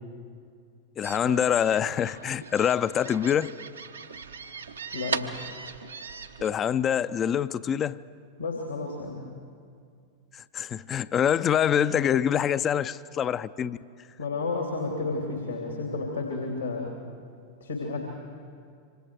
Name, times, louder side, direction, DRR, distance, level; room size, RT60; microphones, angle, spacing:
voice 1, 1.0-3.5 6.4-8.0 10.3-13.8, left 9 dB, 25° left, 15 dB, 0.5 m, -25 dB
sound 1, 1.0-6.5, right 6 dB, 75° right, 0.9 m, -38 dB
voice 2, 4.9-5.3 8.4-9.2 14.2-16.9 17.6-18.0, left 3 dB, 75° left, 1 dB, 2.9 m, -31 dB
26.5 x 25.0 x 4.8 m, 2.3 s
figure-of-eight pair, 90°, 0 cm